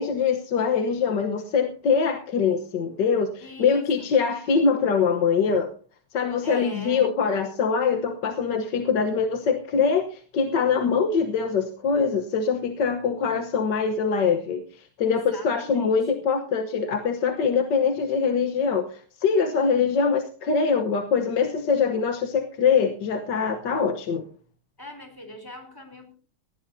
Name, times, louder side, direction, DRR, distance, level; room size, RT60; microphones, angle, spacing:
voice 1, 0.0-5.7 6.1-24.2, left 5 dB, 60° left, 6 dB, 1.6 m, -23 dB
voice 2, 3.4-4.1 6.4-7.1 15.0-16.2 24.8-26.2, left 1 dB, 10° left, 5 dB, 3.5 m, -42 dB
19.0 x 15.5 x 2.7 m, 0.41 s
omnidirectional pair, 2.4 m